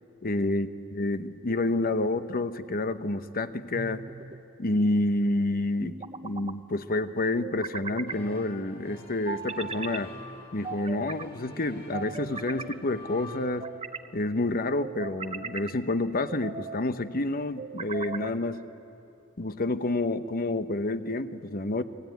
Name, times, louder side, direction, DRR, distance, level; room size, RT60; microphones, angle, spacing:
voice 1, 0.2-4.0 4.6-10.1 10.5-13.7 14.1-18.6 19.4-21.8, left 2 dB, 45° left, 11 dB, 0.9 m, -29 dB
sound 1, 3.7-4.4 5.8-6.6 7.4-8.2 9.3-10.0 10.6-11.3 11.9-12.8 13.4-14.1 14.8-15.7 16.3-16.8 17.6-18.4, right 4 dB, 30° right, 0.9 m, -38 dB
sound 2, 8.1-13.4, left 1 dB, 25° left, 4.9 m, -45 dB
29.5 x 21.5 x 9.3 m, 2.8 s
head